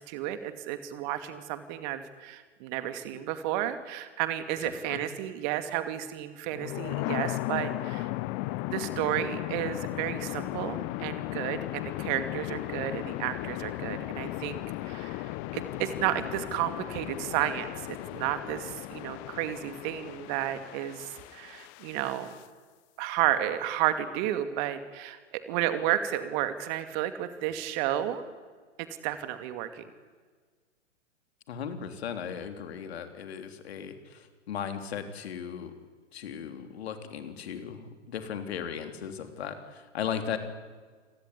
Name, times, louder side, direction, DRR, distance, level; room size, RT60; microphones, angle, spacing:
voice 1, 0.0-8.1 8.7-22.3 23.0-28.2 28.8-29.8, right 12 dB, 40° right, 10 dB, 2.5 m, -32 dB
sound 1, 6.5-22.4, left 19 dB, 30° left, 0.7 m, -36 dB
voice 2, 31.5-35.7 36.1-40.4, left 8 dB, 60° left, 7 dB, 3.6 m, -37 dB
28.5 x 19.0 x 9.7 m, 1.5 s
figure-of-eight pair, 115°, 37 cm